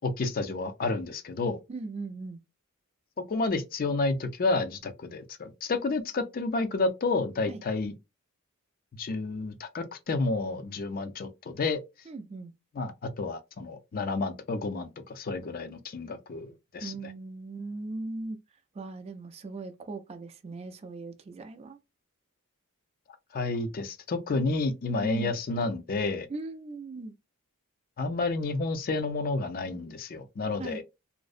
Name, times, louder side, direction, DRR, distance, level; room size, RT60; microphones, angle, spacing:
voice 1, 0.0-1.6 3.3-7.9 9.0-11.8 12.8-16.9 23.3-26.3 28.0-30.8, left 3 dB, 40° left, 0.4 m, -30 dB
voice 2, 1.7-2.4 7.5-7.6 12.1-12.5 16.8-18.4 18.7-21.8 24.9-25.3 26.3-27.1 30.6-30.8, right 3 dB, 30° right, 0.3 m, -38 dB
2.5 x 2.0 x 2.4 m
head